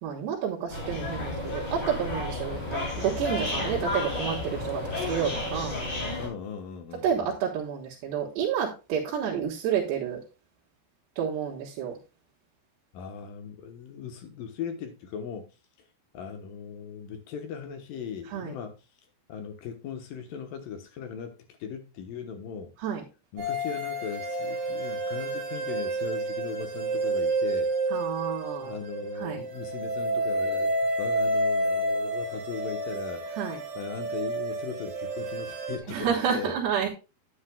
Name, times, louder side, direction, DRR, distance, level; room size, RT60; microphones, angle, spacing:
voice 1, 0.0-5.8 7.0-10.2 11.2-12.0 18.3-18.6 22.8-23.0 27.9-28.8 29.2-29.4 33.4-33.6 35.9-36.9, right 8 dB, 85° right, 3.5 m, -30 dB
sound 1, 0.7-6.3, left 2 dB, 30° left, 3.3 m, -32 dB
voice 2, 3.3-4.0 6.2-7.4 12.9-15.5 16.1-18.8 19.3-21.4 21.6-22.7 23.3-27.7 28.6-33.3 33.8-36.5, left 6 dB, 70° left, 2.4 m, -38 dB
sound 2, 23.4-35.8, right 1 dB, 60° right, 3.4 m, -30 dB
9.9 x 9.6 x 2.2 m
omnidirectional pair, 4.8 m